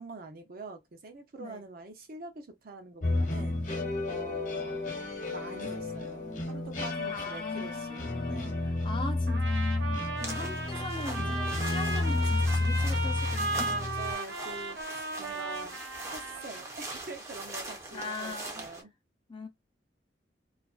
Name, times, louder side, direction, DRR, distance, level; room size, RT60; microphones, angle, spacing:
voice 1, 0.0-3.6 4.1-4.9 5.2-8.7 13.7-15.8 16.0-18.9, right 3 dB, 55° right, 0.7 m, -45 dB
sound 1, 3.0-14.1, left 2 dB, 45° left, 1.0 m, -31 dB
voice 2, 7.0-13.8 17.9-18.6 19.3-19.5, left 3 dB, 30° left, 0.5 m, -40 dB
Trumpet, 9.3-16.6, right 2 dB, 80° right, 1.0 m, -36 dB
sound 2, 10.2-18.8, right 2 dB, 15° right, 0.6 m, -42 dB
2.4 x 2.2 x 2.3 m
head